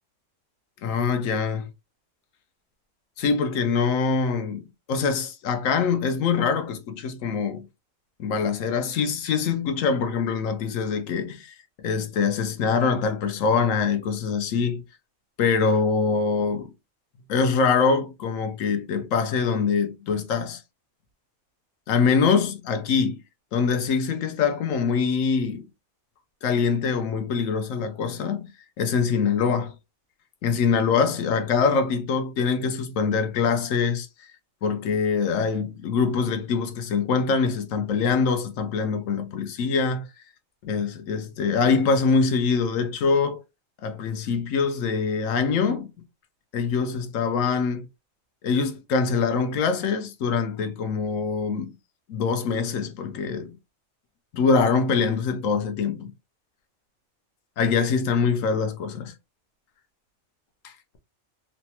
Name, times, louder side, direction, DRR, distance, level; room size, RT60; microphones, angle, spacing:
voice 1, 0.8-1.7 3.2-7.6 8.2-11.5 11.8-14.8 15.4-16.7 17.3-20.6 21.9-23.2 23.5-25.6 26.4-28.5 28.8-29.7 30.4-34.3 34.6-40.1 40.6-43.4 43.8-45.9 46.5-47.9 48.4-51.7 52.1-53.5 54.3-56.1 57.6-59.1 60.6-60.7, left 5 dB, 75° left, 1.0 m, -24 dB
3.2 x 2.1 x 2.8 m
omnidirectional pair, 1.4 m